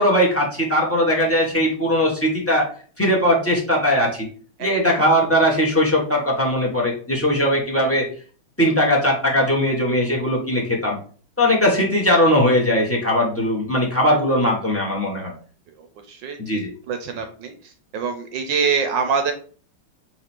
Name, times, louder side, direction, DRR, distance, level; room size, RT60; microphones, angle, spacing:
voice 1, 0.0-2.7 3.0-4.3 4.6-8.1 8.6-11.0 11.4-15.3 16.4-16.7, equal, 10° left, -1 dB, 0.6 m, -19 dB
voice 2, 16.1-17.6 17.9-19.3, right 5 dB, 70° right, 6 dB, 1.2 m, -24 dB
4.2 x 3.0 x 4.3 m, 0.42 s
omnidirectional pair, 2.3 m